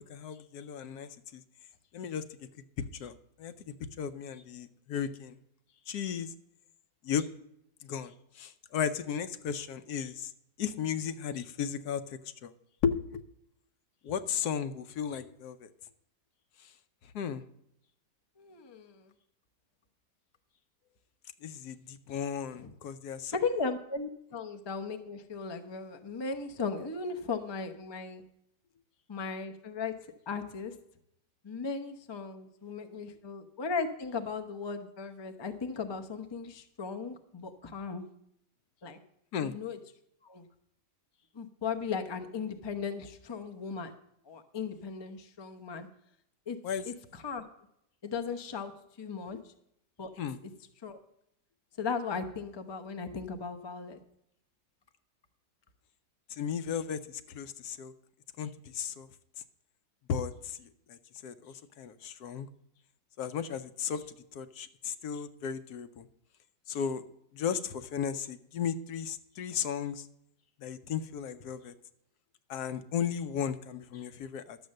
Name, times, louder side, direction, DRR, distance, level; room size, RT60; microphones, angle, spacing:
voice 1, 0.0-1.4 1.9-2.3 2.9-3.1 3.4-3.5 4.0-5.3 5.9-6.3 7.0-7.3 7.8-10.3 10.6-12.5 12.8-13.2 14.0-15.7 16.6-16.7 17.1-17.4 21.4-23.3 39.3-39.5 46.6-46.8 49.3-49.4 50.2-50.4 56.3-57.9 58.4-59.1 60.1-62.5 63.2-64.0 64.3-66.1 66.7-67.0 67.3-70.1 70.6-71.7 72.5-74.6, left 7 dB, 70° left, 11 dB, 1.1 m, -35 dB
voice 2, 18.4-19.1 22.6-22.7 23.3-28.2 29.1-29.9 30.3-30.8 31.4-38.0 38.8-39.0 39.4-39.8 40.2-40.5 41.3-43.9 44.2-45.9 46.5-46.6 46.8-47.4 48.0-48.7 49.0-49.5 50.0-50.1 50.4-50.5 50.8-51.0 51.8-54.0, left 5 dB, 45° left, 7 dB, 0.3 m, -37 dB
11.5 x 7.1 x 6.4 m, 0.77 s
omnidirectional pair, 1.9 m